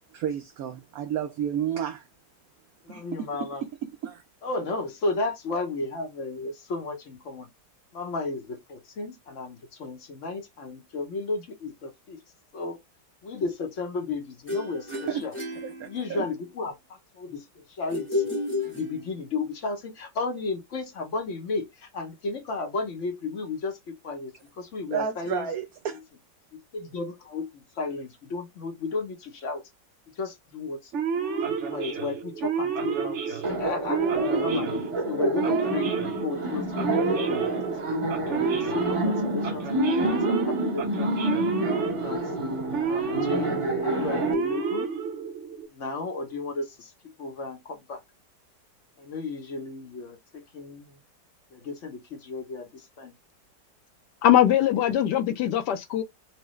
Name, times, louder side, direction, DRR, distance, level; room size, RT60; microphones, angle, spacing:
voice 1, 0.1-2.1 2.9-4.2 14.9-15.2 15.6-16.2 24.9-26.0, right 9 dB, 70° right, 0.9 m, -32 dB
voice 2, 2.8-3.6 4.4-7.5 7.9-12.2 12.5-12.8 13.2-15.3 15.8-18.3 18.6-25.5 26.5-29.6 30.1-30.9 31.5-34.0 34.4-34.7 35.0-37.7 38.2-41.1 41.5-42.3 42.8-44.9 45.7-46.9 47.2-48.0 49.0-51.0 51.5-53.1, left 3 dB, 55° left, 0.9 m, -34 dB
sound 1, 14.5-16.4 17.9-19.4, left 3 dB, 10° left, 0.9 m, -32 dB
Male speech man speaking / Siren, 30.9-45.7, right 6 dB, 50° right, 1.0 m, -30 dB
Laughter, 33.4-44.3, right 1 dB, 25° right, 0.8 m, -28 dB
voice 3, 54.2-56.0, left 11 dB, 75° left, 1.2 m, -21 dB
4.5 x 2.2 x 3.1 m
omnidirectional pair, 1.9 m